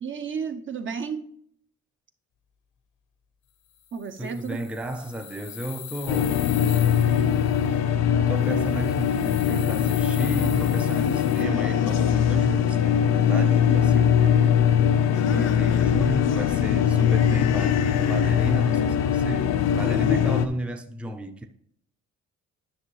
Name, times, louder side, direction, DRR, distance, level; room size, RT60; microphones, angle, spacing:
voice 1, 0.0-1.3 3.9-4.6, right 6 dB, 40° right, 0.7 m, -32 dB
sound 1, 3.8-7.7 8.4-11.4, left 10 dB, 85° left, 1.0 m, -41 dB
voice 2, 4.2-6.4 8.3-14.5 15.1-21.5, right 1 dB, 5° right, 0.5 m, -33 dB
sound 2, 6.1-20.5, left 8 dB, 60° left, 0.5 m, -21 dB
10.0 x 6.0 x 3.2 m
cardioid pair, 90°, 30 cm